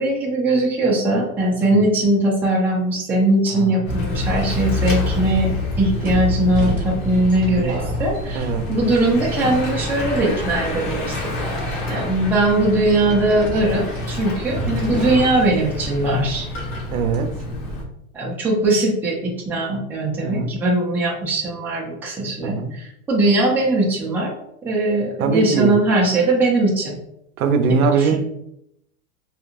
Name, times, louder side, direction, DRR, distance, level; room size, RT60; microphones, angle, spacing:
voice 1, 0.0-11.3 11.9-16.5 18.1-24.3 24.6-27.0 27.7-28.2, right 2 dB, 5° right, -5 dB, 0.4 m, -20 dB
Bicycle / Mechanisms, 3.8-17.8, left 2 dB, 60° left, 1.2 m, -27 dB
sound 1, 4.7-4.8 6.0-9.0 9.3-9.8 10.4-10.7 11.4-12.0 12.8-15.6 15.8-15.9 17.1-17.4, equal, 20° right, 0.8 m, -32 dB
voice 2, 8.3-8.6 14.6-14.8 16.9-17.3 20.2-20.5 22.4-22.7 25.2-25.8 27.4-28.2, right 5 dB, 85° right, 6 dB, 0.6 m, -21 dB
2.9 x 2.4 x 2.4 m, 0.78 s
supercardioid pair, 130°, 42 cm